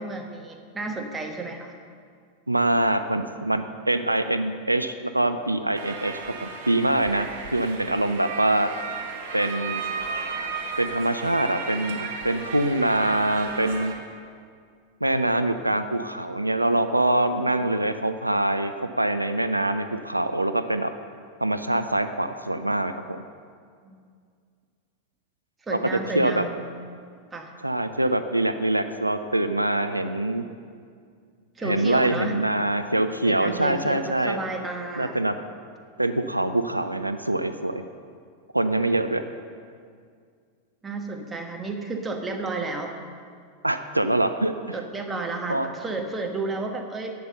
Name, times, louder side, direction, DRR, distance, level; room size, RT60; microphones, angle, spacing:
voice 1, 0.0-1.8 23.8-24.0 25.6-26.6 27.3-27.5 31.6-32.4 33.3-35.2 40.8-42.9 44.7-47.1, right 3 dB, 15° right, 2 dB, 1.4 m, -32 dB
voice 2, 2.5-8.7 9.3-9.8 10.8-13.9 15.0-20.9 21.4-23.2 25.7-25.8 26.2-26.4 27.6-30.4 31.6-34.4 35.0-35.4 36.0-37.8 38.5-39.2 43.6-44.5 45.5-45.7, right 1 dB, 85° right, 9 dB, 0.4 m, -24 dB
sound 1, 5.7-13.9, right 5 dB, 55° right, 1.5 m, -34 dB
11.0 x 8.5 x 6.7 m, 2.2 s
figure-of-eight pair, 90°, 0 cm